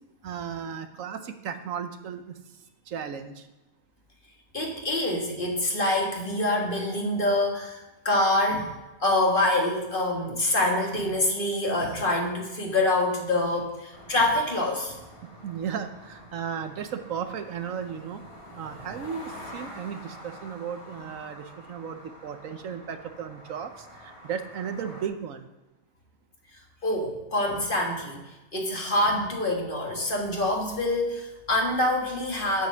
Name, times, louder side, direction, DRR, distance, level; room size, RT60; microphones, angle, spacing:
voice 1, 0.2-2.4 2.9-3.5 15.2-18.2 18.6-25.5, right 7 dB, 70° right, 9 dB, 1.1 m, -35 dB
voice 2, 4.5-8.7 9.0-15.0 26.8-28.2 28.5-32.7, left 1 dB, 40° left, 0 dB, 1.9 m, -26 dB
sound 1, 13.9-25.1, equal, 20° left, 2.0 m, -46 dB
7.7 x 7.6 x 6.7 m, 1.1 s
omnidirectional pair, 1.4 m